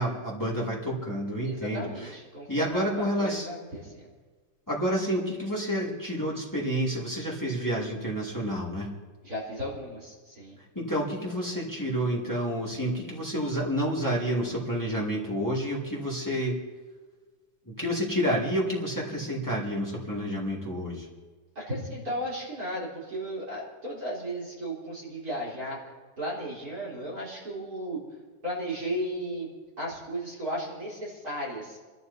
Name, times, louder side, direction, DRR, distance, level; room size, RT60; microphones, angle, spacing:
voice 1, 0.0-2.1 2.5-3.5 4.7-8.9 10.6-16.6 17.6-21.1, equal, 15° left, -5 dB, 0.6 m, -29 dB
voice 2, 1.4-4.1 9.2-10.6 21.6-25.9 26.2-28.0 28.4-29.5 29.8-31.8, equal, 25° right, -6 dB, 3.7 m, -35 dB
27.5 x 13.5 x 2.7 m, 1.4 s
omnidirectional pair, 4.6 m